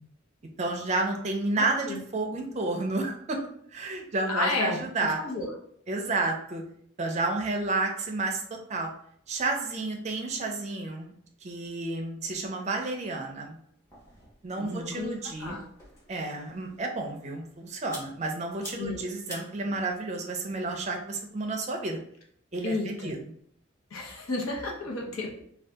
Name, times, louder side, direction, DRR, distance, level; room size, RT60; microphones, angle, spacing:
voice 1, 0.6-3.4 3.7-5.2 5.9-6.6 7.0-8.9 9.3-11.1 11.4-13.6 14.4-15.6 16.1-22.0 22.5-23.2, right 3 dB, 35° right, 2 dB, 0.4 m, -31 dB
voice 2, 1.6-2.0 4.3-5.5 14.6-15.1 15.4-15.6 18.8-19.0 22.6-23.2 23.9-25.4, left 2 dB, 80° left, -1 dB, 0.8 m, -32 dB
sound 1, 13.5-21.5, equal, 15° left, 0.9 m, -50 dB
2.7 x 2.3 x 3.4 m, 0.65 s
head